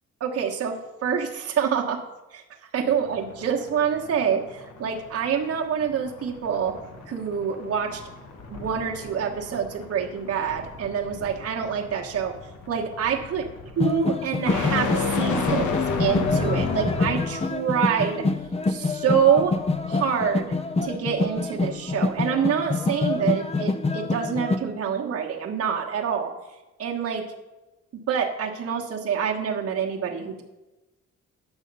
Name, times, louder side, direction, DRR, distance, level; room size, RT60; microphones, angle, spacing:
voice 1, 0.2-0.8 1.0-2.0 2.3-2.4 2.7-6.7 7.1-8.0 8.5-12.3 12.7-13.4 13.8-18.2 18.7-19.5 19.9-20.5 20.8-26.3 26.8-27.2 28.1-30.4, right 7 dB, 50° right, -1 dB, 1.3 m, -26 dB
sound 1, 2.9-17.5, left 4 dB, 80° left, 1.1 m, -32 dB
Thunder / Rain, 4.8-23.2, left 2 dB, 60° left, 3.4 m, -49 dB
sound 2, 13.8-24.6, left 3 dB, 20° left, 0.7 m, -26 dB
9.1 x 6.3 x 5.4 m, 1.1 s
cardioid pair, 90°, 30 cm